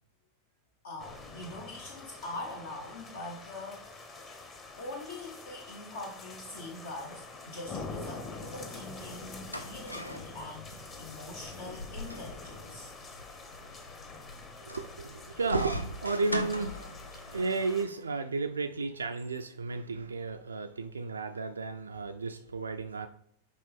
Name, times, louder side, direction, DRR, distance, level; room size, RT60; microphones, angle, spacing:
voice 1, 0.8-4.1 4.8-12.9, left 2 dB, 60° left, 1 dB, 0.9 m, -43 dB
sound 1, 1.0-17.9, left 3 dB, 25° left, 1.0 m, -46 dB
sound 2, 9.1-17.4, left 1 dB, 85° left, 0.5 m, -41 dB
voice 2, 14.6-23.1, right 4 dB, 75° right, 8 dB, 0.3 m, -33 dB
6.7 x 5.0 x 3.4 m, 0.68 s
figure-of-eight pair, 90°, 0 cm